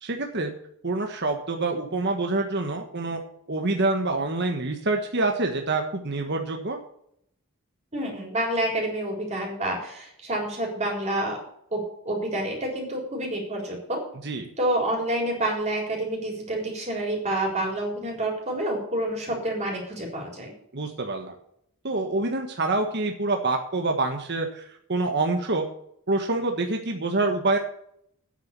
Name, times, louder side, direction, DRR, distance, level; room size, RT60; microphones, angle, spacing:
voice 1, 0.0-0.5 0.8-3.2 3.5-6.8 14.2-14.5 20.7-21.3 21.8-25.7 26.1-27.6, right 2 dB, 50° right, 3 dB, 1.4 m, -26 dB
voice 2, 7.9-11.4 11.7-14.0 14.6-20.5, right 1 dB, 30° right, -1 dB, 4.1 m, -28 dB
9.4 x 8.2 x 6.9 m, 0.70 s
head